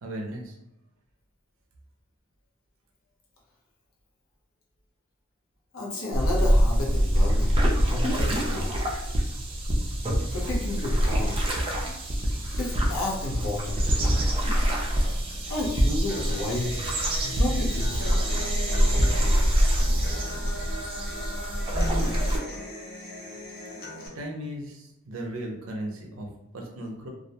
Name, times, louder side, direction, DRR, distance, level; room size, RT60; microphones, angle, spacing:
voice 1, 0.0-0.5 21.7-22.1 24.2-27.1, right 1 dB, 75° right, 1 dB, 0.5 m, -36 dB
voice 2, 5.7-8.7 10.3-11.4 12.4-13.8 15.5-16.9 17.2-18.2, left 2 dB, 85° left, -3 dB, 0.6 m, -32 dB
sound 1, 6.1-22.4, equal, 25° right, 0.4 m, -25 dB
Human voice / Acoustic guitar, 16.1-24.1, equal, 50° left, 0.6 m, -39 dB
2.4 x 2.0 x 2.7 m, 0.88 s
head